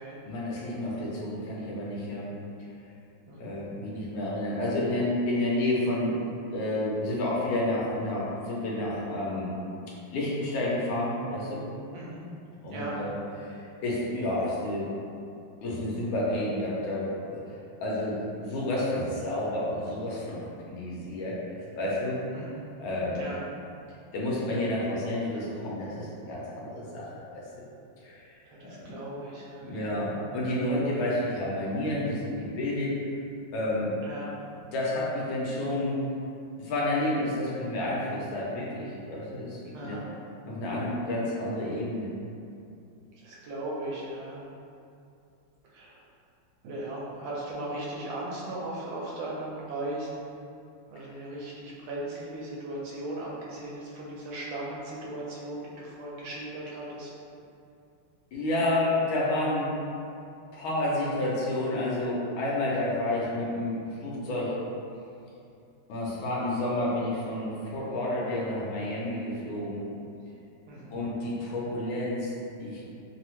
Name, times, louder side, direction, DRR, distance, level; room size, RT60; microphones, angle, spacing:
voice 1, 0.2-2.3 3.4-6.1 6.5-9.5 10.1-11.6 12.6-14.9 15.6-17.5 17.8-20.4 20.7-21.4 21.8-22.2 22.8-23.3 24.1-27.4 28.0-28.2 28.8-29.0 29.6-32.9 33.5-33.9 34.7-36.0 36.6-40.0 40.4-42.1 51.1-51.2 58.3-59.7 60.5-64.5 65.9-69.8 70.9-72.3 72.6-72.8, left 1 dB, 85° left, -6 dB, 1.5 m, -30 dB
voice 2, 11.9-12.2 12.7-13.0 22.3-22.6 23.1-23.4 28.6-29.7 30.0-30.2 34.0-34.4 39.7-40.1 43.2-44.4 45.7-46.0 46.6-50.2 50.9-57.1 70.7-70.9, right 1 dB, 80° right, -5 dB, 1.3 m, -37 dB
3.6 x 2.0 x 2.9 m, 2.6 s
omnidirectional pair, 2.3 m